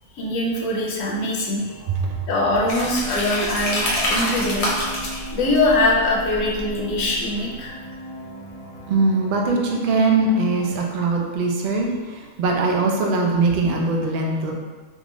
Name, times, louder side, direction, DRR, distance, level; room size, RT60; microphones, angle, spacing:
voice 1, 0.2-1.8 2.3-4.7 5.3-7.7, left 2 dB, 70° left, -2 dB, 1.0 m, -22 dB
sound 1, 1.6-10.7, right 1 dB, 35° right, 1.2 m, -38 dB
voice 2, 1.9-2.2 8.9-14.5, right 3 dB, 80° right, 0 dB, 0.4 m, -21 dB
sound 2, 2.7-7.3, left 1 dB, 50° left, 0.4 m, -27 dB
3.5 x 2.5 x 3.0 m, 1.4 s
omnidirectional pair, 1.5 m